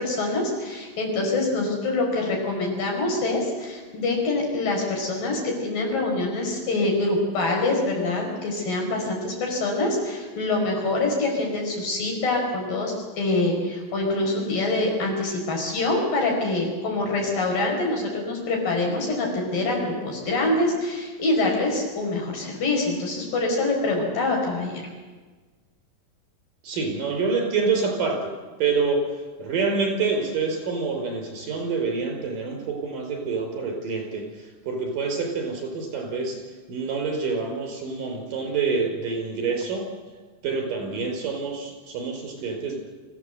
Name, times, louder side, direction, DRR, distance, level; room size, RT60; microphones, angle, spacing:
voice 1, 0.0-24.8, left 2 dB, 75° left, 0 dB, 6.8 m, -25 dB
voice 2, 26.6-28.3 28.6-29.0 29.4-34.2 34.7-36.4 36.7-39.8 40.4-42.8, right 4 dB, 70° right, 1 dB, 6.6 m, -27 dB
25.0 x 16.0 x 8.0 m, 1.4 s
omnidirectional pair, 4.0 m